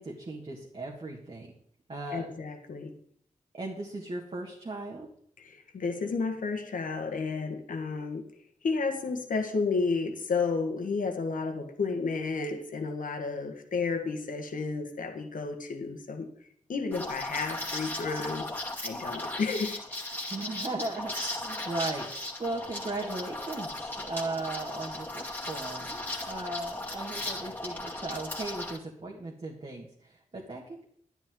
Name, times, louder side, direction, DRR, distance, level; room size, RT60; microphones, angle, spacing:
voice 1, 0.0-1.5 1.9-2.3 3.5-5.1 20.3-30.8, right 2 dB, 45° right, -2 dB, 1.9 m, -37 dB
voice 2, 2.1-2.9 5.4-8.2 8.6-16.3 16.7-18.4 18.8-19.8, left 4 dB, 75° left, 5 dB, 1.5 m, -32 dB
Liquid, 16.9-28.8, left 1 dB, 15° left, 2.3 m, -37 dB
11.0 x 10.5 x 3.8 m, 0.65 s
cardioid pair, 60°, 14 cm